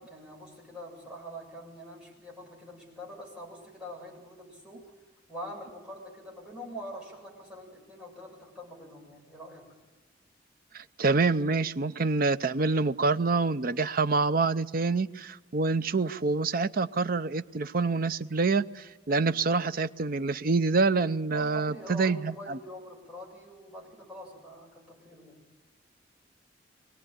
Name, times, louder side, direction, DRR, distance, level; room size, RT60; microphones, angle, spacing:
voice 1, 0.0-4.8 5.3-9.7 21.3-25.4, equal, 5° right, -2 dB, 7.3 m, -44 dB
voice 2, 10.7-22.6, right 4 dB, 50° right, 12 dB, 0.6 m, -26 dB
22.5 x 18.5 x 9.0 m, 1.2 s
head